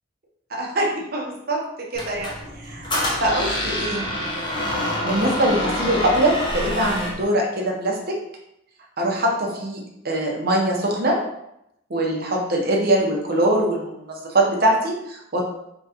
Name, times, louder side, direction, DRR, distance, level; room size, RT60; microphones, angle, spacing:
voice 1, 0.5-4.1 5.0-8.2 9.0-11.2 11.9-15.4, right 1 dB, 50° right, -1 dB, 0.7 m, -23 dB
Squeak, 1.9-7.2, left 1 dB, 25° left, 0.7 m, -27 dB
3.6 x 3.0 x 2.8 m, 0.81 s
head